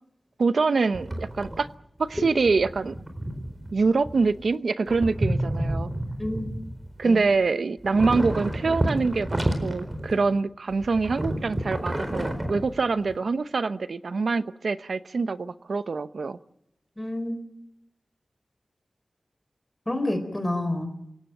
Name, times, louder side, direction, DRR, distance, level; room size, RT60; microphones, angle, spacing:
voice 1, 0.4-1.7 2.0-3.0 3.7-5.9 7.0-16.4, right 4 dB, 85° right, 13 dB, 0.8 m, -25 dB
sound 1, 0.9-1.7 2.0-4.5 4.9-7.5 7.8-10.4 10.7-13.1, right 1 dB, 30° right, 4.3 m, -30 dB
voice 2, 17.0-17.4 19.9-20.9, left 1 dB, 15° left, 7 dB, 4.2 m, -28 dB
28.0 x 17.5 x 7.8 m, 0.82 s
wide cardioid pair, 90°, 0 cm